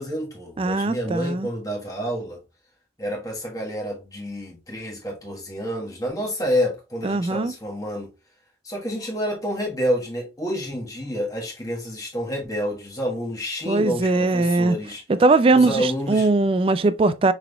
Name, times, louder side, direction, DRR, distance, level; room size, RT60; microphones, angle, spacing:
voice 1, 0.0-2.4 3.0-8.1 8.6-15.0 15.5-16.3, equal, 20° left, 1.3 m, -28 dB
voice 2, 0.6-1.5 7.0-7.5 13.7-14.8 15.1-17.3, right 3 dB, 30° right, 0.3 m, -20 dB
5.9 x 3.5 x 2.3 m
head